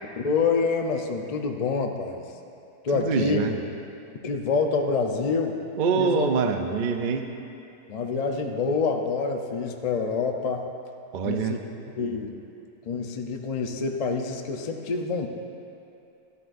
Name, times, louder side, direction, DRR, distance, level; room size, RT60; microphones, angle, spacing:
voice 1, 0.2-2.2 2.8-3.4 4.2-5.6 6.0-6.3 7.9-10.7 11.2-11.6 11.9-12.3 12.8-15.3, left 4 dB, 75° left, 3 dB, 0.3 m, -27 dB
voice 2, 2.9-3.6 5.8-7.3 11.1-11.6, right 5 dB, 90° right, 5 dB, 0.4 m, -25 dB
13.0 x 11.5 x 2.6 m, 2.7 s
omnidirectional pair, 1.7 m